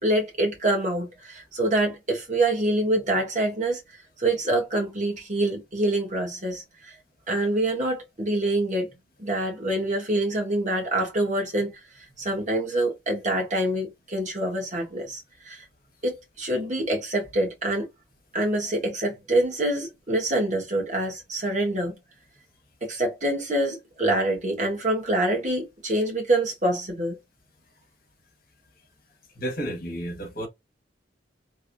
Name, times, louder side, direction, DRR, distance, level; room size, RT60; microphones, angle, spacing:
voice 1, 0.0-3.8 4.2-6.9 7.3-8.9 9.2-11.7 12.2-15.6 16.0-17.9 18.3-21.9 22.8-27.2, right 1 dB, 40° right, 1.5 m, -26 dB
voice 2, 29.3-30.5, right 1 dB, 50° left, 1.5 m, -31 dB
3.5 x 3.1 x 2.2 m
head